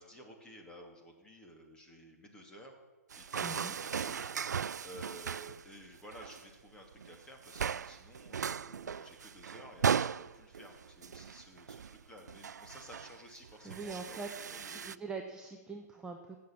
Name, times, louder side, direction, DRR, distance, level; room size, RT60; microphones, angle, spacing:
voice 1, 0.0-2.7 3.1-4.3 4.8-14.2 14.5-15.0, equal, 10° left, 2 dB, 2.5 m, -53 dB
sound 1, 3.1-5.7 5.9-6.4 6.9-7.2 7.4-15.0, right 7 dB, 85° right, 0.4 m, -37 dB
voice 2, 3.4-3.8 13.6-16.5, right 4 dB, 10° right, 2 dB, 1.0 m, -43 dB
16.0 x 7.2 x 9.9 m, 1.2 s
hypercardioid pair, 140°, 9 cm